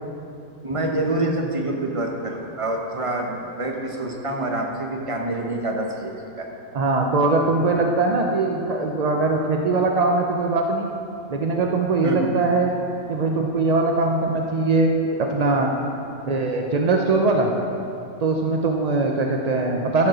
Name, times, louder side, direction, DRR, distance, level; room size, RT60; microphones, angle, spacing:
voice 1, 0.6-6.5 12.0-12.3, right 2 dB, 25° right, 1 dB, 0.9 m, -26 dB
voice 2, 6.7-10.9 11.3-12.8 13.1-14.9 15.2-15.7 16.3-17.5 18.2-20.1, right 3 dB, 55° right, 1 dB, 0.4 m, -21 dB
13.5 x 5.3 x 6.0 m, 2.7 s
omnidirectional pair, 1.5 m